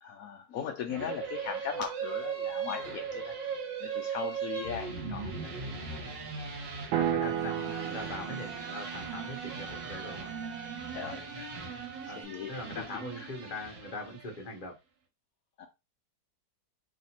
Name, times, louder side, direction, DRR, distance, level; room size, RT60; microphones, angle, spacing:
voice 1, 0.0-3.3 3.8-5.5 10.9-11.5 12.0-12.5 12.9-13.3 15.6-15.7, left 8 dB, 85° left, 0.7 m, -39 dB
sound 1, 0.9-14.5, right 5 dB, 70° right, 1.8 m, -39 dB
voice 2, 6.9-10.3 12.1-12.2 12.5-14.8, left 2 dB, 35° left, 0.8 m, -41 dB
sound 2, 6.9-11.0, right 11 dB, 85° right, 1.4 m, -35 dB
Bowed string instrument, 7.2-12.2, right 6 dB, 30° right, 0.9 m, -46 dB
3.3 x 2.8 x 4.2 m
omnidirectional pair, 2.1 m